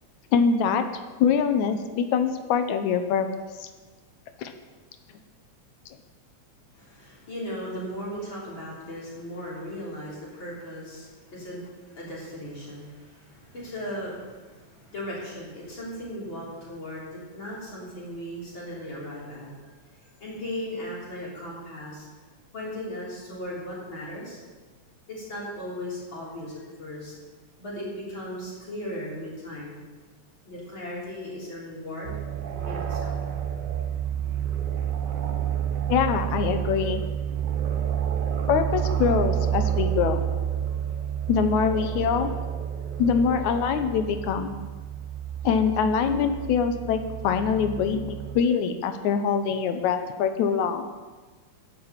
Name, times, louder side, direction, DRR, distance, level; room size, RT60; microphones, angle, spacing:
voice 1, 0.3-0.8 1.2-3.3 3.6-3.7 4.4-4.5 35.9-37.0 38.5-40.2 41.3-42.3 43.0-44.6 45.4-50.9, left 6 dB, 85° left, 8 dB, 2.2 m, -24 dB
voice 2, 6.7-22.1 22.5-24.4 25.1-27.1 27.6-29.8 30.4-32.2 32.7-33.2, equal, 40° left, -6 dB, 4.0 m, -37 dB
sound 1, 32.0-48.4, right 9 dB, 80° right, 1.0 m, -29 dB
10.0 x 7.8 x 7.1 m, 1.3 s
omnidirectional pair, 3.3 m